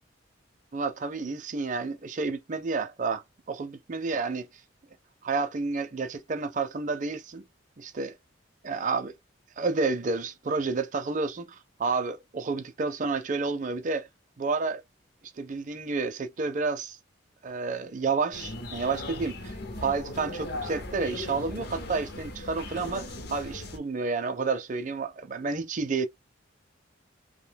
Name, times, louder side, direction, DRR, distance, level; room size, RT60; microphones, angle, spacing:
voice 1, 0.7-4.5 5.2-7.4 7.8-8.1 8.6-9.1 9.6-14.1 14.4-14.8 15.4-17.0 17.4-19.5 19.8-26.1, right 4 dB, 40° right, 0.4 m, -30 dB
sound 1, 18.3-23.8, left 2 dB, 50° left, 0.7 m, -38 dB
2.5 x 2.1 x 3.4 m
head